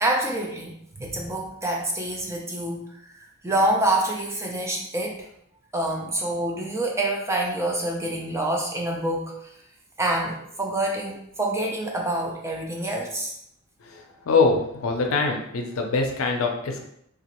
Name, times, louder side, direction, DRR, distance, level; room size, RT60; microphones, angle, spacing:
voice 1, 0.0-5.3 5.7-9.4 10.0-13.3, right 1 dB, 15° right, -1 dB, 0.4 m, -27 dB
voice 2, 13.9-16.9, left 4 dB, 75° left, 3 dB, 0.5 m, -24 dB
3.0 x 2.4 x 2.9 m, 0.73 s
head